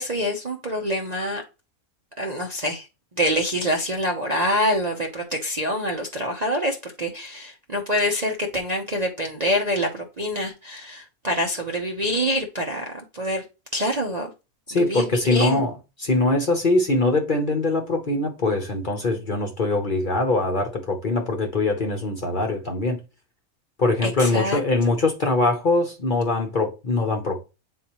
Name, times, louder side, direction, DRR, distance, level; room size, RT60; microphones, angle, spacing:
voice 1, 0.0-1.4 2.2-2.9 3.2-13.4 13.7-14.3 14.7-15.6 24.0-24.6, equal, 35° right, 0.7 m, -26 dB
voice 2, 14.7-23.0 23.8-27.4, left 2 dB, 40° left, 0.9 m, -22 dB
8.4 x 4.0 x 3.0 m
omnidirectional pair, 1.6 m